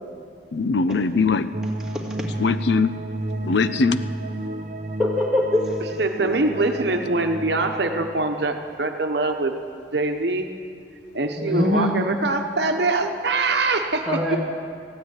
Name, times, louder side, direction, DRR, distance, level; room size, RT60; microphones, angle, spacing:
voice 1, 0.5-1.5 2.4-2.9 3.4-4.0, left 4 dB, 70° left, 12 dB, 0.5 m, -21 dB
sound 1, 1.5-8.1, right 1 dB, 45° right, 0.7 m, -31 dB
voice 2, 1.9-2.3 5.0-5.8 11.4-11.9 14.1-14.4, left 1 dB, 5° right, -3 dB, 1.9 m, -23 dB
voice 3, 6.0-9.6 9.9-10.5 11.1-14.4, right 2 dB, 65° right, 5 dB, 1.0 m, -23 dB
15.0 x 9.5 x 9.0 m, 2.3 s
head